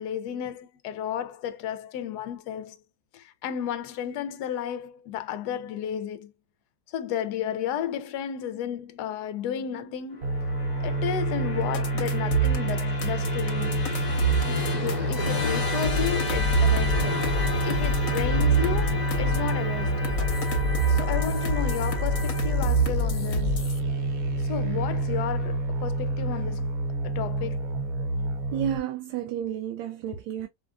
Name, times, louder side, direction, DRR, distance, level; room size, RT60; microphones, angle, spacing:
voice 1, 0.0-2.8 3.1-6.3 6.9-10.3 10.8-13.9 14.5-17.2 17.6-20.1 20.9-23.7 24.4-26.7 27.0-27.7, left 9 dB, 70° left, 1.1 m, -33 dB
Musical instrument, 10.2-25.5, left 3 dB, 30° left, 0.9 m, -33 dB
sound 1, 10.2-28.8, right 2 dB, 60° right, 1.0 m, -28 dB
sound 2, 11.7-15.3 15.8-19.5 20.0-23.8, right 2 dB, 50° left, 1.3 m, -26 dB
voice 2, 28.5-30.5, right 10 dB, 85° right, 1.3 m, -31 dB
5.1 x 2.4 x 2.4 m
omnidirectional pair, 2.0 m